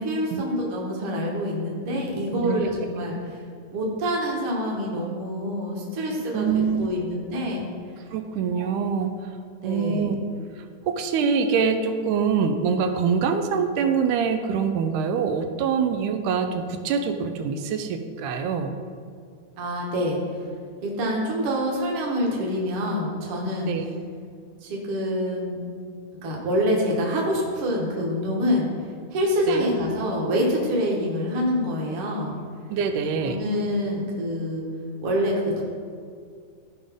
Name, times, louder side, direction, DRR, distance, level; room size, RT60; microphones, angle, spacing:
voice 1, 0.0-3.2 3.7-7.6 8.5-8.8 9.6-10.1 19.6-20.2 20.8-23.7 24.6-25.6 26.2-28.7 29.1-32.3 33.2-34.7 35.0-35.6, equal, 50° right, -2 dB, 2.1 m, -26 dB
voice 2, 6.3-6.9 8.1-9.1 9.6-10.2 10.9-18.8 23.7-23.8 29.5-29.7 32.7-33.4, right 6 dB, 85° right, 6 dB, 2.1 m, -24 dB
14.0 x 5.2 x 3.6 m, 2.2 s
omnidirectional pair, 3.5 m